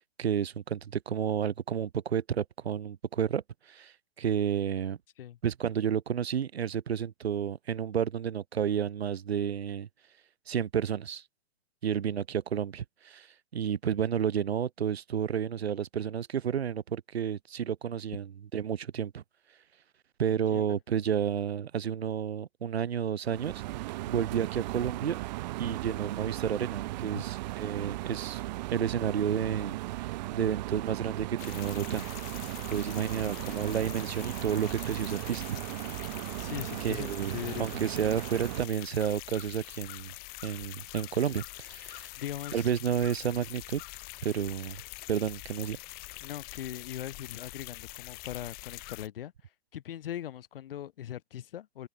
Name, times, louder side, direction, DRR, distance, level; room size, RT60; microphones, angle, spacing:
voice 1, 0.0-5.0 5.4-9.9 10.5-11.2 11.8-13.3 13.5-19.2 20.2-23.6 24.1-25.2 25.6-28.4 28.7-32.1 32.7-35.6 36.8-40.1 40.4-42.1 42.5-43.8 44.2-44.8 45.1-45.8, right 8 dB, 85° right, 3.7 m, -31 dB
voice 2, 20.3-20.8 27.1-27.2 36.4-37.8 42.2-42.7 46.2-51.9, left 11 dB, 65° left, 6.6 m, -40 dB
sound 1, 23.2-38.7, right 18 dB, 45° right, 2.6 m, -37 dB
sound 2, 31.4-49.1, left 25 dB, 30° left, 2.7 m, -45 dB
open air
hypercardioid pair, 150°, 31 cm